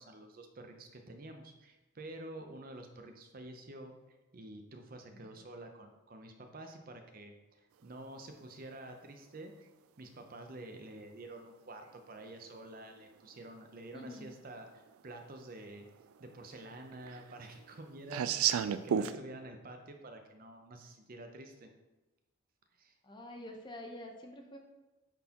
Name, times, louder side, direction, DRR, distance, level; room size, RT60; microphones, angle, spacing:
voice 1, 0.0-9.5 10.0-15.9 16.2-21.7 22.8-22.9, right 1 dB, 45° right, 5 dB, 0.6 m, -49 dB
voice 2, 5.1-5.5 13.9-14.4 23.0-24.6, left 1 dB, 20° left, 3 dB, 0.7 m, -47 dB
sound 1, 12.6-12.7 14.0-14.1 14.6-14.7 14.9-15.6 15.9-19.2, right 9 dB, 90° right, 0.3 m, -33 dB
8.9 x 4.1 x 2.9 m, 1.1 s
head